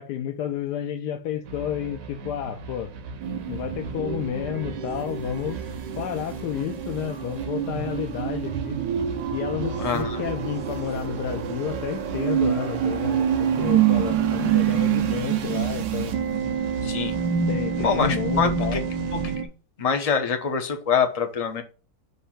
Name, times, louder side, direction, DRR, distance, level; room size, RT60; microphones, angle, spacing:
voice 1, 0.0-2.9 3.5-5.6 6.0-8.8 9.3-16.1 17.5-18.8, left 10 dB, 75° left, 1.2 m, -31 dB
sound 1, 1.4-19.4, right 4 dB, 60° right, 1.1 m, -38 dB
sound 2, 3.2-19.5, right 8 dB, 90° right, 1.5 m, -27 dB
voice 2, 9.8-10.2 16.8-17.1 17.8-18.8 19.8-21.6, left 6 dB, 45° left, 0.4 m, -25 dB
6.7 x 2.6 x 5.6 m
omnidirectional pair, 1.9 m